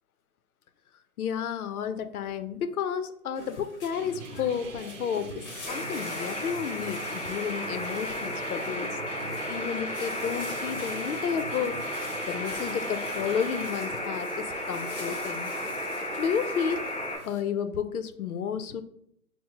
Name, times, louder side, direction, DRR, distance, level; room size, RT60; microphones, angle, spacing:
voice 1, 1.2-8.9 9.5-11.8 12.3-15.5 16.2-16.8 17.2-18.8, left 7 dB, 70° left, 11 dB, 0.6 m, -31 dB
sound 1, 3.3-17.4, left 2 dB, 40° left, 0.9 m, -45 dB
sound 2, 3.9-13.7, right 5 dB, 55° right, 0.5 m, -45 dB
sound 3, 5.7-17.2, left 1 dB, ahead, 1.1 m, -34 dB
5.6 x 2.1 x 2.9 m, 0.71 s
hypercardioid pair, 170°, 45 cm